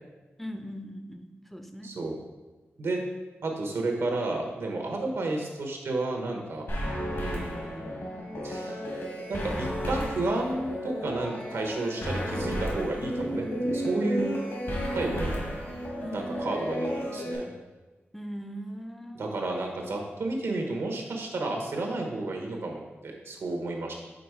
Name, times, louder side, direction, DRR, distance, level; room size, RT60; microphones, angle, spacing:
voice 1, 0.4-1.9 16.0-16.4 18.1-19.3, equal, 5° left, 7 dB, 0.4 m, -40 dB
voice 2, 1.8-2.1 2.8-3.0 3.4-6.6 7.1-7.9 8.4-8.8 9.3-14.4 14.9-15.4 16.1-17.5 19.1-23.9, right 2 dB, 90° right, 1 dB, 1.0 m, -31 dB
sound 1, 6.7-17.4, equal, 70° left, 1.6 m, -32 dB
5.1 x 4.1 x 4.7 m, 1.2 s
wide cardioid pair, 90°, 4 cm